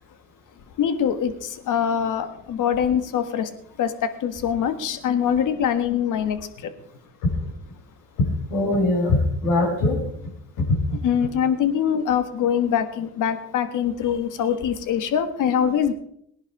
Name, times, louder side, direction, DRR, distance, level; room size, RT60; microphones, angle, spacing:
voice 1, 0.8-3.5 3.8-6.7 11.0-15.9, left 8 dB, 60° left, 10 dB, 1.6 m, -23 dB
voice 2, 8.2-10.0 10.6-10.8, left 2 dB, 80° left, 0 dB, 5.5 m, -21 dB
18.5 x 11.0 x 4.8 m, 0.71 s
supercardioid pair, 75°, 34 cm